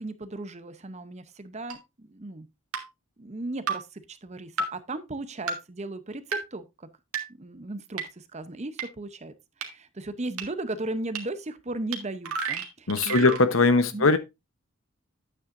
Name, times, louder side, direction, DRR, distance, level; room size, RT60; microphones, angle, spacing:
voice 1, 0.0-2.5 3.2-6.9 7.4-9.3 9.6-13.4 13.9-14.2, right 2 dB, 30° right, 0.7 m, -36 dB
sound 1, 1.7-1.8 2.7-2.8 3.7-3.8 4.6-4.7 5.5-5.6 6.3-6.4 7.1-7.2 8.0-8.1 8.8-8.9 9.6-9.7 10.4-10.5 11.2-11.3 11.9-12.0 12.2-13.4, right 4 dB, 80° right, 1.8 m, -30 dB
voice 2, 12.9-14.2, left 3 dB, 65° left, 0.9 m, -20 dB
9.6 x 8.5 x 2.6 m
head